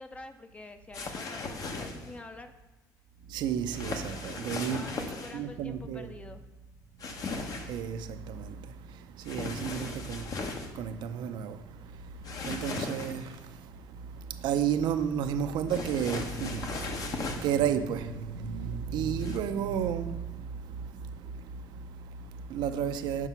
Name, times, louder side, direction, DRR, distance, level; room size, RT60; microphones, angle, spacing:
voice 1, 0.0-2.5 4.7-6.4, left 2 dB, 15° left, 0.5 m, -46 dB
sound 1, 0.9-2.1 3.7-5.4 7.0-7.8 9.2-10.7 12.2-13.4 15.7-17.6 19.2-19.4, left 3 dB, 50° left, 0.9 m, -37 dB
voice 2, 3.2-6.1 7.1-23.3, right 8 dB, 70° right, 0.5 m, -33 dB
6.0 x 4.9 x 5.6 m
cardioid pair, 115°, 8 cm